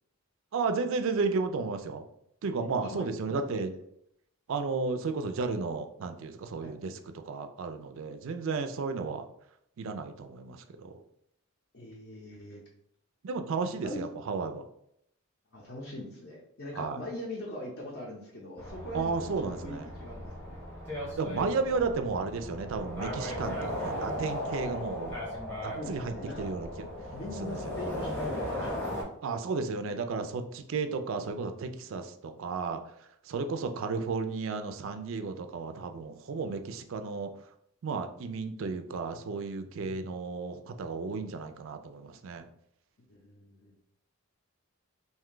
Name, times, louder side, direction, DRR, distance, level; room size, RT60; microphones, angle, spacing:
voice 1, 0.5-2.1 2.4-3.7 4.5-7.0 7.2-9.3 9.8-11.0 13.2-14.7 16.8-17.0 18.9-19.9 21.2-25.2 25.6-26.9 27.4-27.6 29.2-37.3 37.8-42.5, right 4 dB, 60° right, 8 dB, 0.3 m, -33 dB
voice 2, 2.5-3.1 3.5-3.6 6.6-6.7 11.7-12.6 13.8-14.0 15.5-20.6 25.7-26.5 27.1-28.8 43.1-43.7, left 1 dB, 50° left, -5 dB, 0.6 m, -42 dB
sound 1, 18.6-29.0, equal, 10° left, 0.7 m, -37 dB
2.6 x 2.2 x 3.7 m, 0.73 s
head